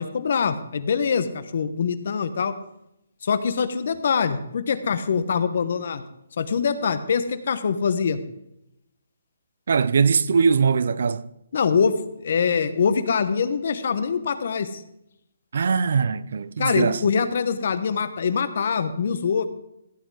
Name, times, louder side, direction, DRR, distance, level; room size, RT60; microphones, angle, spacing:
voice 1, 0.0-2.5 3.2-6.0 6.4-8.2 11.5-14.8 16.6-19.5, left 6 dB, 50° left, 1.0 m, -24 dB
voice 2, 9.7-11.3 15.5-17.0, right 5 dB, 60° right, 0.5 m, -21 dB
15.0 x 7.9 x 4.8 m
hypercardioid pair, 170°, 0 cm